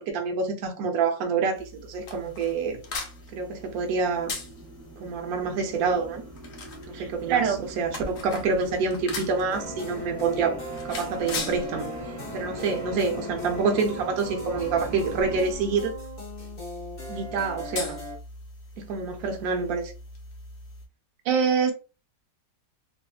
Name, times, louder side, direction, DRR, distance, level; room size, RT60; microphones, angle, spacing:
voice 1, 0.0-2.8 3.3-4.3 5.0-6.2 6.9-7.4 7.8-10.6 10.8-11.9 12.3-15.9 17.1-18.0 18.8-19.9, right 4 dB, 65° right, 1.0 m, -27 dB
sound 1, 1.5-20.9, left 3 dB, 60° left, 0.7 m, -41 dB
sound 2, 2.3-15.4, right 2 dB, 25° right, 0.3 m, -42 dB
voice 2, 6.9-7.7 21.2-21.7, right 6 dB, 80° right, 1.3 m, -24 dB
sound 3, 9.5-18.2, left 2 dB, 30° left, 1.1 m, -38 dB
2.9 x 2.5 x 2.3 m
omnidirectional pair, 1.9 m